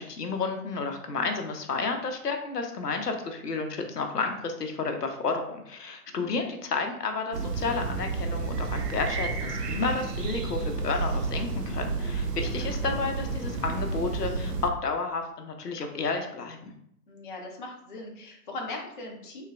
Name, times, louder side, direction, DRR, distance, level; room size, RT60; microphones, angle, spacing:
voice 1, 0.0-16.7, left 4 dB, 85° left, 5 dB, 0.6 m, -31 dB
sound 1, 7.3-14.7, right 4 dB, 85° right, 0.6 m, -31 dB
voice 2, 17.1-19.5, left 2 dB, 35° left, 0 dB, 0.4 m, -40 dB
3.1 x 2.2 x 2.2 m, 0.74 s
figure-of-eight pair, 120°, 46 cm